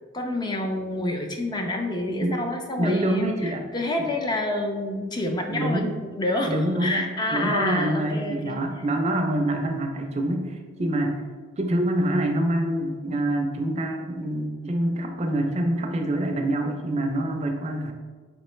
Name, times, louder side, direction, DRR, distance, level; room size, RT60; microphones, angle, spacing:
voice 1, 0.1-8.6, left 1 dB, 25° left, 3 dB, 0.4 m, -28 dB
voice 2, 2.8-3.6 4.0-4.1 5.5-5.9 6.4-11.2 11.6-17.9, right 1 dB, 35° right, 4 dB, 0.4 m, -26 dB
4.7 x 3.1 x 3.1 m, 1.4 s
head